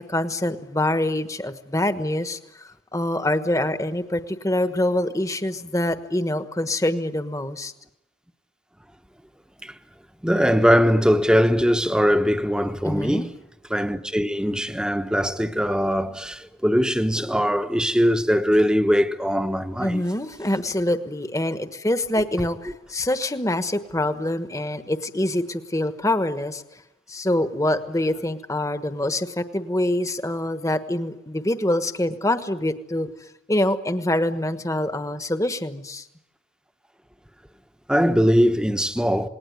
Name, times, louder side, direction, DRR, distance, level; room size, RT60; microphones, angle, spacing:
voice 1, 0.0-7.7 12.8-13.3 19.8-26.8 27.1-36.1, left 1 dB, 15° left, 1.3 m, -25 dB
voice 2, 10.2-13.3 13.7-20.0 37.9-39.3, equal, 5° right, 1.1 m, -21 dB
28.0 x 20.0 x 9.5 m
head